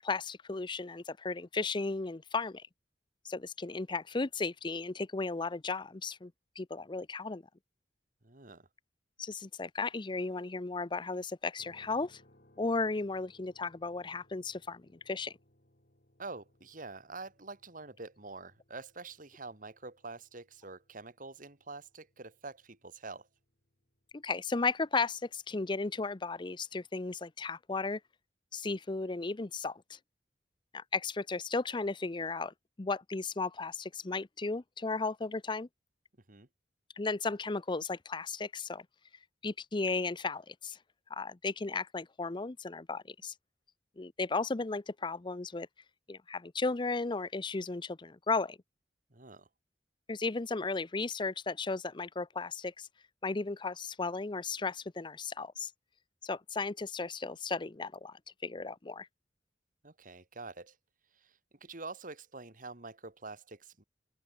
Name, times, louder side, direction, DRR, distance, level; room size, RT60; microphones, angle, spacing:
voice 1, 0.0-2.7 3.2-6.3 6.6-7.4 9.2-12.2 12.6-15.3 24.1-28.0 28.5-30.0 30.7-35.7 37.0-38.8 39.4-40.8 41.1-43.3 44.0-45.7 46.1-48.6 50.1-52.9 53.2-55.7 56.2-59.1, left 3 dB, 25° left, 0.6 m, -35 dB
voice 2, 8.2-8.7 16.2-23.3 36.3-36.5 49.1-49.5 59.8-60.8 61.2-61.3 61.6-63.8, right 3 dB, 50° right, 2.3 m, -46 dB
sound 1, 11.6-25.6, left 1 dB, 55° left, 6.8 m, -68 dB
open air
head